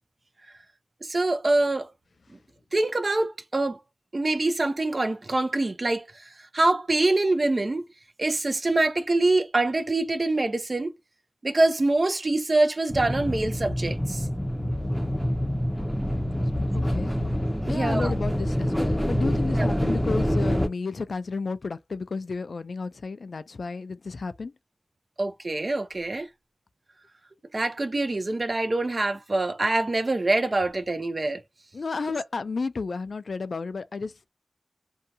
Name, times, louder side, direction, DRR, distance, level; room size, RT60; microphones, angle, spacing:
voice 1, 1.0-1.9 2.7-3.8 4.1-6.0 6.5-7.8 8.2-10.9 11.4-14.2 17.7-18.1 19.6-19.8 25.2-26.3 27.5-31.4, right 2 dB, 55° right, 0.6 m, -25 dB
sound 1, 12.9-20.7, equal, ahead, 0.6 m, -26 dB
voice 2, 16.7-17.1 17.7-24.5 31.7-34.3, left 4 dB, 85° left, 0.3 m, -32 dB
2.7 x 2.3 x 2.7 m
cardioid pair, 40°, 0 cm